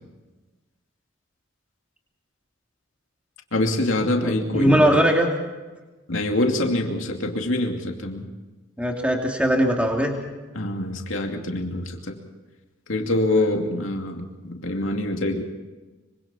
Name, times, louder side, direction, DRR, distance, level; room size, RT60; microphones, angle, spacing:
voice 1, 3.5-4.9 6.1-8.3 10.5-12.2 12.9-15.4, left 1 dB, 75° left, 2 dB, 2.6 m, -25 dB
voice 2, 4.2-5.3 8.8-10.1, equal, 5° right, 1 dB, 2.8 m, -20 dB
25.5 x 25.0 x 4.4 m, 1.2 s
head